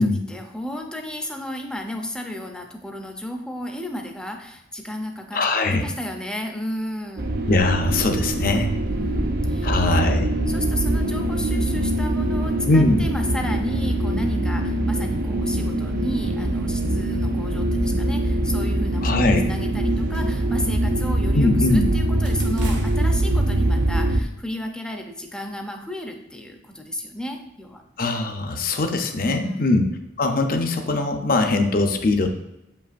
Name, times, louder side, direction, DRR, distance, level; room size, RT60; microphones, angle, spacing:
voice 1, 0.0-5.4 5.7-7.3 8.8-9.8 10.5-27.8 29.4-29.8, left 1 dB, 5° left, 3 dB, 0.5 m, -33 dB
voice 2, 5.3-5.9 7.5-8.7 9.6-10.3 12.7-13.0 19.0-19.4 21.3-21.8 28.0-29.9 30.2-32.3, left 2 dB, 50° left, 5 dB, 0.6 m, -21 dB
sound 1, 7.2-24.2, right 1 dB, 50° right, 0.5 m, -23 dB
sound 2, 19.9-21.8 22.2-24.1, right 2 dB, 75° right, 1.0 m, -41 dB
7.5 x 5.4 x 2.5 m, 0.90 s
head